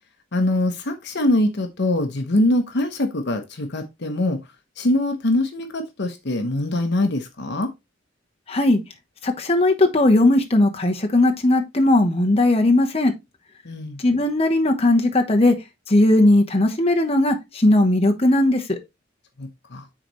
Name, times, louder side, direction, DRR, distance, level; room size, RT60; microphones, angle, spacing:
voice 1, 0.3-4.4 4.8-7.7 13.6-14.0 19.4-19.9, left 1 dB, 60° left, 0.9 m, -23 dB
voice 2, 8.5-8.8 9.2-13.1 14.0-15.5 15.9-18.8, left 1 dB, 30° left, 1.1 m, -18 dB
9.8 x 4.0 x 3.1 m
head